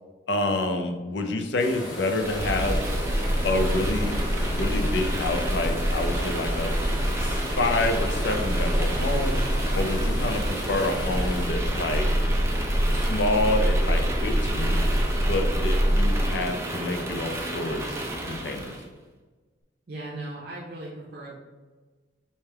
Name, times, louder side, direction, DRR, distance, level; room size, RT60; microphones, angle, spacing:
voice 1, 0.3-2.8 3.4-6.7 7.2-9.4 9.7-12.0 12.9-14.8 15.2-18.8, left 2 dB, 70° left, 6 dB, 0.5 m, -28 dB
sound 1, 1.6-11.5, equal, 20° left, 1.0 m, -38 dB
sound 2, 2.1-18.8, equal, 15° right, 0.5 m, -26 dB
voice 2, 19.9-21.4, right 2 dB, 55° right, -3 dB, 0.7 m, -37 dB
4.2 x 3.3 x 3.4 m, 1.3 s
head